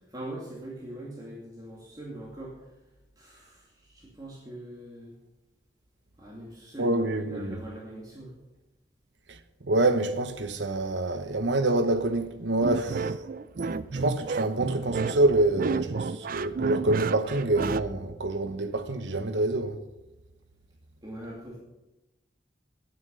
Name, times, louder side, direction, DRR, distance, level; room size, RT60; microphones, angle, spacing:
voice 1, 0.1-2.7 3.2-5.2 6.2-8.3 11.1-11.2 13.5-13.6 21.0-21.6, right 1 dB, 20° right, 2.3 m, -42 dB
voice 2, 6.8-7.6 9.3-13.3 13.9-19.8, right 2 dB, 85° right, 1.1 m, -26 dB
sound 1, 12.6-17.8, right 4 dB, 50° right, 0.4 m, -30 dB
9.7 x 9.5 x 6.8 m
head